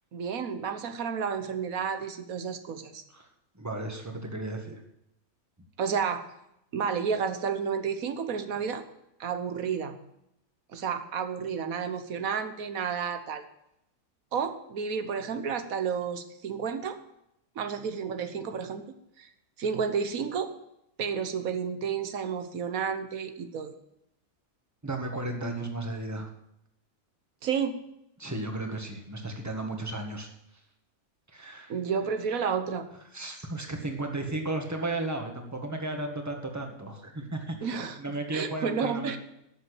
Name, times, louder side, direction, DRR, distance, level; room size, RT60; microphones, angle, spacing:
voice 1, 0.1-3.0 5.8-6.2 6.7-8.8 9.2-10.0 10.7-13.4 14.3-17.0 17.5-18.8 19.2-19.3 19.6-20.5 21.0-23.7 27.4-27.8 31.7-32.9 37.6-39.2, right 6 dB, 90° right, 9 dB, 1.5 m, -31 dB
voice 2, 3.6-4.8 24.8-26.3 28.2-30.3 31.3-31.7 33.1-37.7 38.0-39.2, right 2 dB, 10° right, 3 dB, 1.8 m, -34 dB
12.5 x 7.1 x 8.3 m, 0.81 s
omnidirectional pair, 1.4 m